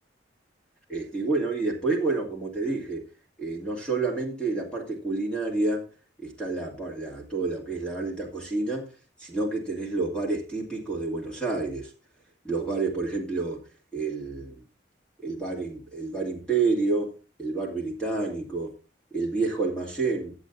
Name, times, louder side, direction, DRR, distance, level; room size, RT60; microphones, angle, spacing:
voice 1, 0.9-3.0 3.4-5.8 6.2-8.9 9.2-11.9 12.4-13.6 13.9-14.6 15.2-17.1 17.4-18.7 19.1-20.3, right 3 dB, 5° left, 2.3 m, -29 dB
10.5 x 7.7 x 3.9 m
head